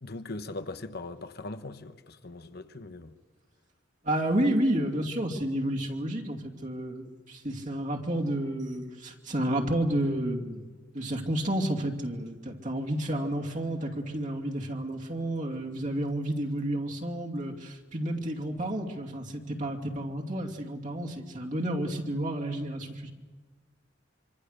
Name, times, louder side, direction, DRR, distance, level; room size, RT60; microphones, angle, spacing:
voice 1, 0.0-3.1, left 2 dB, 55° left, 1.1 m, -40 dB
voice 2, 4.0-10.6 10.9-23.1, right 1 dB, 40° right, 2.6 m, -31 dB
25.5 x 25.5 x 6.7 m
head